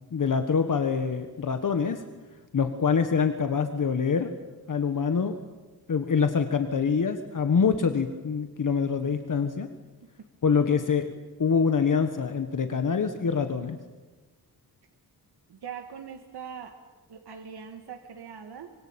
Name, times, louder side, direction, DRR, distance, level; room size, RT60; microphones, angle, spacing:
voice 1, 0.1-2.0 2.5-4.3 4.7-5.3 5.9-9.7 10.4-11.1 11.4-13.8, left 6 dB, 55° left, 7 dB, 1.6 m, -25 dB
voice 2, 15.5-16.8 17.1-18.7, right 7 dB, 90° right, 4 dB, 1.9 m, -41 dB
25.5 x 23.5 x 8.9 m, 1.2 s
wide cardioid pair, 130°, 38 cm